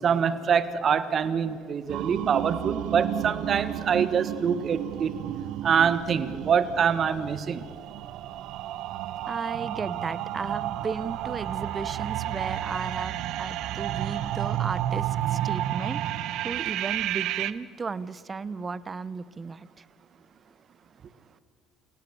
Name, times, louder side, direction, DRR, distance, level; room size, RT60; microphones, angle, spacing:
voice 1, 0.0-5.1 5.6-7.6, right 7 dB, 50° right, 13 dB, 1.5 m, -25 dB
sound 1, 1.9-17.5, right 12 dB, 70° right, 0.9 m, -32 dB
voice 2, 9.3-19.8, right 4 dB, 30° right, 18 dB, 0.9 m, -35 dB
29.0 x 17.5 x 7.0 m, 2.2 s
supercardioid pair, 75°, 0 cm